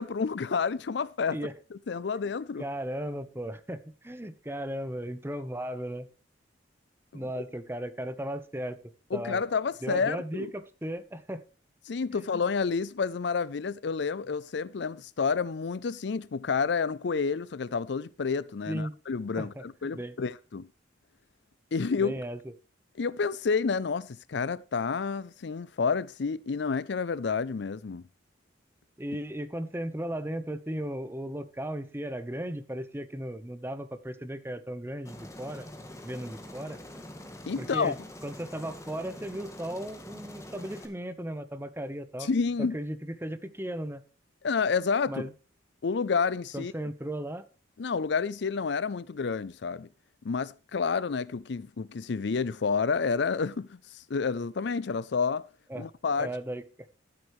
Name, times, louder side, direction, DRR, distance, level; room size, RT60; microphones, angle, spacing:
voice 1, 0.0-1.4 1.9-2.6 7.1-7.2 9.1-10.5 11.9-20.7 21.7-22.1 23.0-28.0 37.5-37.9 42.2-42.8 44.4-45.2 45.8-46.7 47.8-49.9 50.2-55.5 55.8-56.3, left 5 dB, 65° left, 0.5 m, -29 dB
voice 2, 2.6-6.1 7.1-8.8 9.1-9.4 9.8-11.4 12.1-12.3 18.7-18.9 19.4-19.6 19.9-20.2 22.0-22.5 29.0-35.7 36.0-36.8 37.6-42.3 42.6-44.0 45.1-45.3 46.5-47.4 55.7-55.9 56.2-56.9, right 1 dB, 15° right, 1.0 m, -36 dB
Aircraft, 35.0-40.8, left 1 dB, 15° left, 2.0 m, -45 dB
14.0 x 8.2 x 3.2 m
head